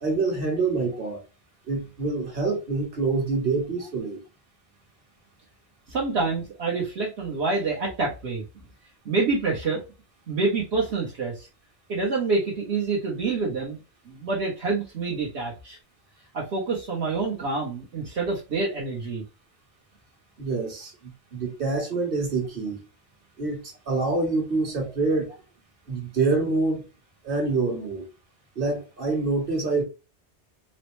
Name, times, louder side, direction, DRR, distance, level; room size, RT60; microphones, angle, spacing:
voice 1, 0.0-1.2 1.7-4.2 20.4-22.8 23.4-25.3 25.9-26.8 27.2-28.0 28.5-29.8, right 3 dB, 50° right, 1.4 m, -26 dB
voice 2, 5.9-8.4 9.0-9.8 10.3-11.5 11.9-13.8 14.1-15.8 16.3-19.2, right 3 dB, 65° right, 1.1 m, -27 dB
4.2 x 2.1 x 3.0 m
omnidirectional pair, 1.2 m